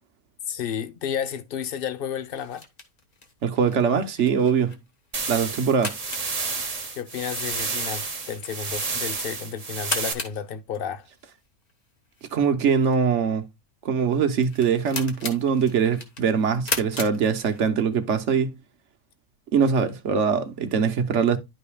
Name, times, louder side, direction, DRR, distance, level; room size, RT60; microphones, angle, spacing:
voice 1, 0.5-2.6 6.9-11.1, left 8 dB, 50° left, 0.9 m, -32 dB
sound 1, 2.3-17.9, left 3 dB, 30° left, 1.2 m, -38 dB
voice 2, 3.4-4.8 5.3-5.9 12.3-13.4 13.8-18.5 19.5-21.4, right 6 dB, 60° right, 1.1 m, -22 dB
sound 2, 5.1-10.1, right 4 dB, 30° right, 1.0 m, -30 dB
11.5 x 5.2 x 2.3 m
omnidirectional pair, 1.5 m